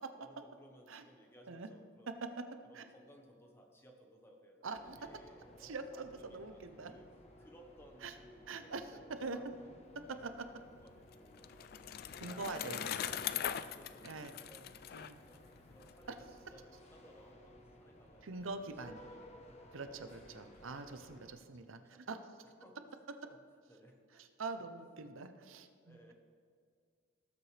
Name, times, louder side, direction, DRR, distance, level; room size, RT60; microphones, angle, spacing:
voice 1, 0.2-2.1 2.6-6.6 6.9-7.1 7.4-10.5 10.8-11.5 12.1-14.9 15.2-19.4 19.8-21.2 21.5-22.3 22.6-22.8 23.2-23.4 23.7-24.6 25.8-26.1, equal, 10° left, 2 dB, 1.1 m, -62 dB
voice 2, 4.6-5.0 5.6-6.9 8.0-8.1 8.5-8.8 9.2-9.4 10.2-10.5 12.2-12.9 14.0-14.4 14.9-15.2 18.2-19.0 19.7-22.2 24.2-26.1, right 3 dB, 75° right, 9 dB, 0.7 m, -44 dB
sound 1, 4.7-21.4, left 1 dB, 30° left, 1.0 m, -59 dB
Bicycle, 10.8-15.9, left 10 dB, 50° left, 0.3 m, -41 dB
18.0 x 7.8 x 3.3 m, 2.2 s
head